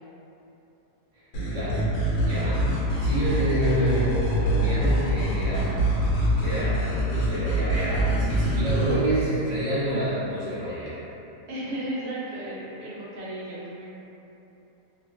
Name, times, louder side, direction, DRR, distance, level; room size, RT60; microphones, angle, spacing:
sound 1, 1.3-9.0, right 1 dB, 70° left, 1.0 m, -24 dB
voice 1, 1.5-1.8 2.2-2.7 3.0-5.8 6.4-11.0, right 1 dB, 40° right, -11 dB, 0.7 m, -28 dB
voice 2, 11.5-13.9, right 1 dB, 70° right, -7 dB, 1.1 m, -34 dB
2.8 x 2.2 x 2.5 m, 3.0 s
omnidirectional pair, 1.7 m